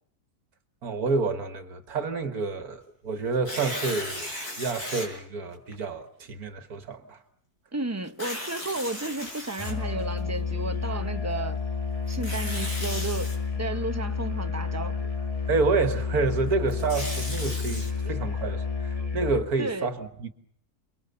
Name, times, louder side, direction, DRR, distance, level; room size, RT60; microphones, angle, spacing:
voice 1, 0.8-7.2 15.5-20.3, right 4 dB, 70° right, 2.0 m, -29 dB
Tearing, 3.3-5.1 5.7-5.8 8.1-10.2 12.1-13.4 16.5-17.9, left 1 dB, 75° left, 7.2 m, -36 dB
voice 2, 7.7-11.6 12.1-15.1 19.6-19.9, right 3 dB, 15° right, 0.8 m, -33 dB
Musical instrument, 9.6-19.5, left 5 dB, 20° left, 2.3 m, -30 dB
29.0 x 22.0 x 7.0 m
omnidirectional pair, 1.7 m